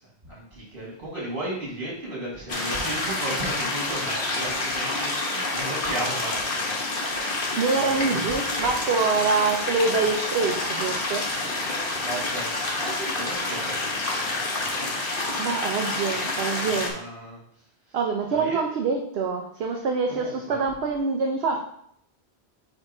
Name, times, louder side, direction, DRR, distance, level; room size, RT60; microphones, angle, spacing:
voice 1, 0.2-6.8 7.8-8.3 11.7-12.5 12.8-14.9 16.6-17.4 17.9-18.0 18.3-18.6 20.1-20.6, right 1 dB, 55° right, -4 dB, 2.3 m, -35 dB
sound 1, 2.5-16.9, left 2 dB, 60° left, 1.2 m, -28 dB
voice 2, 7.6-11.2 15.4-17.0 17.9-21.6, right 4 dB, 75° right, 2 dB, 0.9 m, -25 dB
4.8 x 4.5 x 4.8 m, 0.68 s
omnidirectional pair, 1.1 m